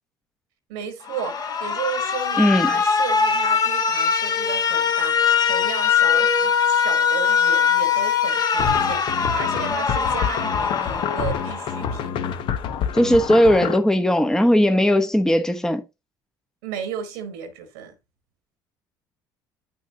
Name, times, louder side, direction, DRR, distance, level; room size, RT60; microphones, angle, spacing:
voice 1, 0.7-12.1 16.6-17.9, right 7 dB, 85° right, 1.3 m, -34 dB
Alarm, 1.1-12.1, left 7 dB, 40° left, 1.5 m, -21 dB
voice 2, 2.4-2.7 12.9-15.8, equal, 5° left, 0.9 m, -18 dB
sound 1, 8.6-13.8, left 8 dB, 60° left, 0.9 m, -28 dB
8.6 x 5.8 x 2.7 m
supercardioid pair, 75°, 10 cm